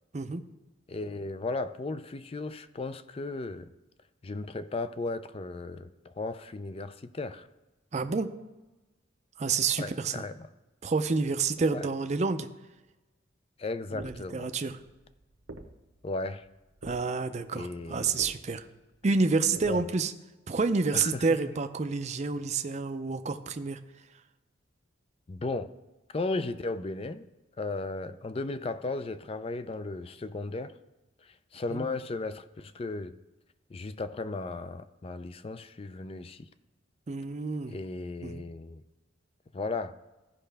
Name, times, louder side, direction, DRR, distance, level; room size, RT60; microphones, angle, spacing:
voice 1, 0.9-3.7 4.2-7.5 9.8-10.4 11.7-11.9 13.6-14.5 16.0-16.4 17.5-18.2 19.7-19.8 20.9-21.4 25.3-25.7 26.1-27.3 27.6-30.7 31.2-33.2 33.7-36.5 37.7-38.8 39.5-40.0, left 3 dB, 30° left, 0.4 m, -35 dB
voice 2, 7.9-8.3 9.4-10.2 10.8-12.5 13.9-14.8 16.8-18.6 19.0-20.1 20.5-23.8 31.7-31.8 37.1-37.8 38.2-38.4, right 4 dB, 35° right, 0.5 m, -29 dB
sound 1, 14.0-19.8, right 2 dB, 85° right, 1.0 m, -50 dB
15.0 x 5.5 x 3.4 m
head